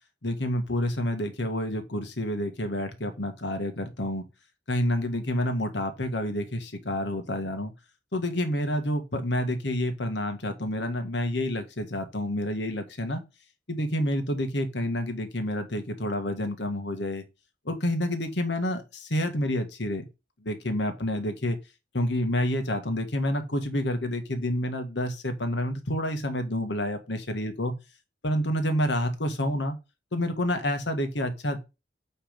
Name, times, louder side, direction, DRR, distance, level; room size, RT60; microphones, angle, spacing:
voice 1, 0.2-4.2 4.7-7.7 8.1-13.2 13.7-17.2 17.6-20.1 20.4-21.6 21.9-27.7 28.2-29.7 30.1-31.6, left 1 dB, 75° left, 1.7 m, -28 dB
8.7 x 3.5 x 5.1 m
head